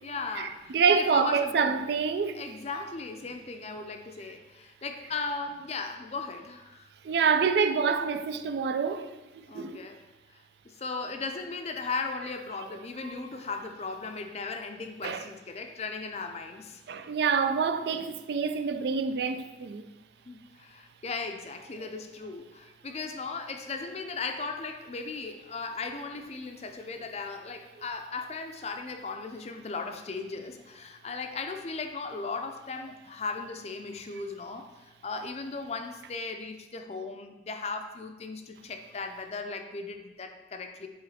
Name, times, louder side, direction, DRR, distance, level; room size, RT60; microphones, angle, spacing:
voice 1, 0.0-1.7 2.3-6.9 9.5-10.0 10.3-16.8 20.3-40.9, left 4 dB, 35° left, 0.5 m, -37 dB
voice 2, 0.7-2.4 7.0-9.1 9.5-9.8 15.0-15.3 16.9-19.8, right 5 dB, 60° right, 0.3 m, -26 dB
8.0 x 3.2 x 4.2 m
head